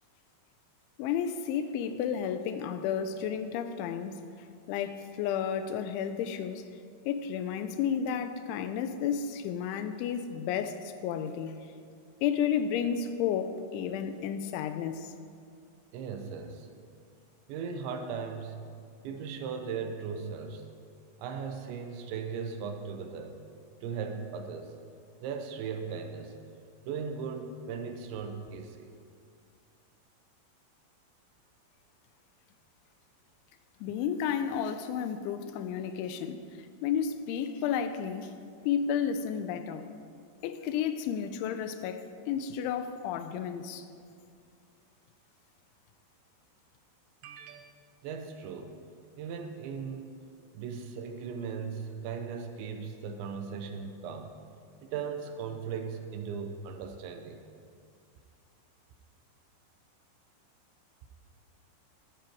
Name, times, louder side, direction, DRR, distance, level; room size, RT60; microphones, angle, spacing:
voice 1, 1.0-4.2 4.7-6.7 7.1-11.5 12.2-15.1 33.8-36.4 36.8-38.3 38.7-39.9 40.4-43.9, left 8 dB, 85° left, 10 dB, 3.0 m, -32 dB
voice 2, 15.9-16.7 17.5-18.7 19.0-20.7 21.2-23.4 23.8-24.7 25.2-26.3 26.9-28.9 47.2-48.8 49.2-50.2 50.5-54.4 54.8-57.4, right 6 dB, 75° right, 5 dB, 3.1 m, -38 dB
14.5 x 13.5 x 4.6 m, 2.3 s
omnidirectional pair, 5.5 m